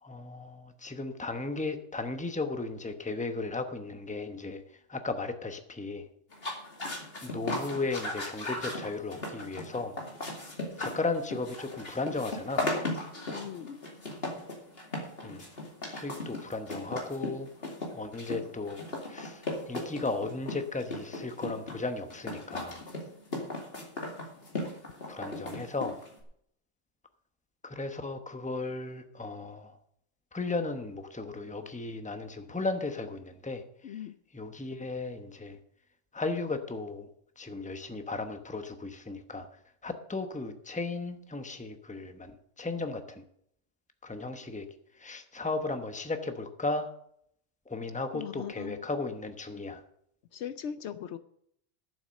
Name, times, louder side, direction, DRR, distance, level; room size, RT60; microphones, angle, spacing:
voice 1, 0.0-4.6 4.9-6.1 7.2-10.0 10.8-12.7 15.2-15.4 15.9-17.5 17.9-18.8 19.1-22.8 25.1-26.0 27.6-29.7 30.3-34.0 34.3-35.6 36.1-37.1 37.4-39.5 39.8-42.3 42.6-43.2 44.0-44.7 45.0-46.9 47.7-49.8, left 3 dB, 5° left, 7 dB, 0.9 m, -35 dB
sound 1, 6.3-26.2, left 2 dB, 50° left, 2.7 m, -37 dB
voice 2, 13.3-13.8 33.8-34.2 48.1-48.8 50.3-51.2, left 9 dB, 70° left, 13 dB, 0.9 m, -39 dB
12.0 x 7.2 x 6.5 m, 0.70 s
omnidirectional pair, 1.3 m